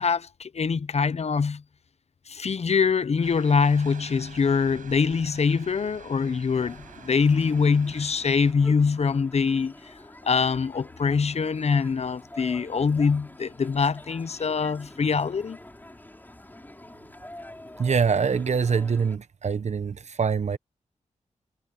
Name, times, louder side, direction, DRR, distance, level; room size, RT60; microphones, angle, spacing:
voice 1, 0.0-1.6 2.3-9.9 10.2-15.6, left 5 dB, 55° left, 0.8 m, -24 dB
sound 1, 3.2-8.5, right 7 dB, 85° right, 7.8 m, -47 dB
sound 2, 6.5-19.2, left 1 dB, 15° left, 6.8 m, -47 dB
voice 2, 17.8-20.6, right 6 dB, 60° right, 1.1 m, -24 dB
cardioid pair, 65°, 13 cm